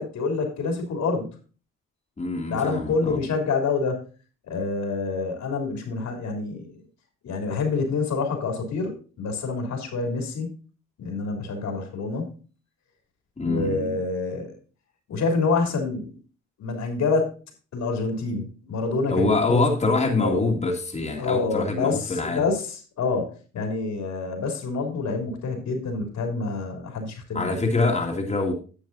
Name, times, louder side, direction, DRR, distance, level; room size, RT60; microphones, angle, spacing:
voice 1, 0.0-1.3 2.5-4.0 4.5-6.8 7.2-10.5 11.0-12.4 13.4-14.5 15.1-16.2 16.6-17.3 17.7-19.6 20.0-20.5 21.2-27.6, left 4 dB, 65° left, 3 dB, 3.1 m, -27 dB
voice 2, 2.2-3.2 13.4-14.0 19.1-22.4 27.3-28.5, left 3 dB, 20° left, 0 dB, 2.1 m, -24 dB
10.0 x 7.1 x 3.9 m, 0.37 s
cardioid pair, 90°, 30 cm